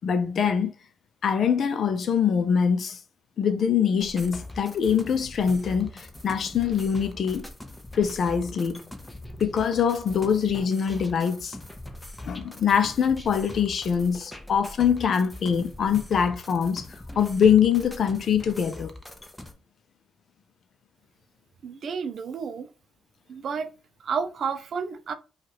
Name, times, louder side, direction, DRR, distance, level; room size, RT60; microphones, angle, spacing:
voice 1, 0.0-0.7 1.2-3.0 3.4-7.5 7.9-8.9 9.4-11.6 12.3-16.9 17.2-18.9, left 7 dB, 55° left, 0.6 m, -23 dB
sound 1, 4.0-19.5, left 1 dB, 10° left, 0.8 m, -42 dB
voice 2, 21.6-22.7 23.3-23.7 24.0-25.1, right 6 dB, 55° right, 0.5 m, -31 dB
4.8 x 2.4 x 3.0 m
cardioid pair, 90°, 0 cm